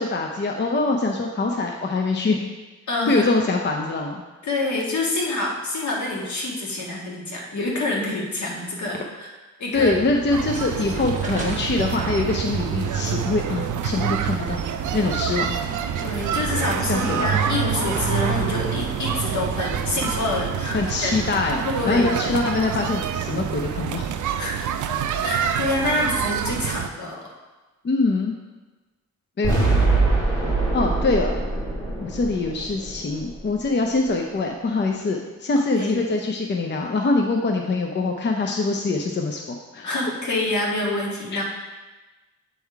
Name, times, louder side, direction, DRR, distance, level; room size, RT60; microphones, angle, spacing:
voice 1, 0.0-2.4 3.1-4.2 9.7-14.6 14.9-15.6 16.8-17.3 20.7-24.1 27.8-28.3 29.4-29.5 30.7-31.4 32.0-39.4 39.7-40.0 41.3-41.4, left 3 dB, 35° left, 2 dB, 0.6 m, -24 dB
voice 2, 2.9-3.3 4.4-9.3 9.6-9.9 10.7-11.1 16.0-21.1 21.6-22.1 24.4-27.3 35.8-35.9 39.8-41.4, left 2 dB, 70° left, -3 dB, 1.6 m, -27 dB
sound 1, 9.7-22.6, right 3 dB, 25° right, 1.2 m, -35 dB
sound 2, 10.3-26.9, right 8 dB, 75° right, 0.5 m, -27 dB
sound 3, 29.4-33.6, right 3 dB, 10° left, 2.2 m, -23 dB
8.4 x 3.7 x 4.6 m, 1.2 s
wide cardioid pair, 105°, 30 cm